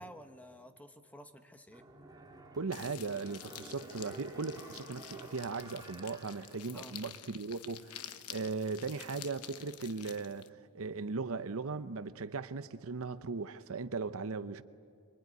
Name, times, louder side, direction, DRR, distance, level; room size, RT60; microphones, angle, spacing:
voice 1, 0.0-1.8 6.7-6.9, equal, 5° left, 1.3 m, -52 dB
sound 1, 1.7-7.2 7.6-7.7, right 1 dB, 20° right, 2.8 m, -52 dB
voice 2, 2.6-10.5 10.7-14.6, right 4 dB, 65° right, 0.8 m, -38 dB
sound 2, 2.7-10.5, left 11 dB, 85° left, 1.1 m, -50 dB
26.0 x 24.0 x 9.5 m
head